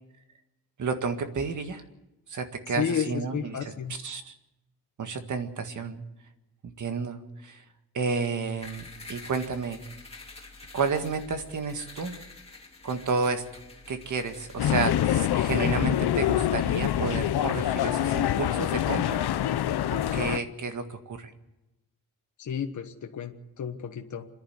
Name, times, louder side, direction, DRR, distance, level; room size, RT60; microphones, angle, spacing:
voice 1, 0.8-1.8 2.3-3.7 4.0-4.3 5.0-6.0 6.6-7.6 7.9-9.8 10.7-12.2 12.8-13.4 13.9-19.3 20.1-21.3, right 4 dB, 50° right, 7 dB, 1.9 m, -31 dB
voice 2, 2.7-4.0 22.4-24.3, left 8 dB, 50° left, 5 dB, 1.3 m, -32 dB
sound 1, 8.6-15.1, left 3 dB, 15° left, 2.6 m, -47 dB
sound 2, 14.6-20.4, left 11 dB, 80° left, 0.9 m, -25 dB
27.0 x 11.0 x 9.6 m, 0.97 s
wide cardioid pair, 165°, 38 cm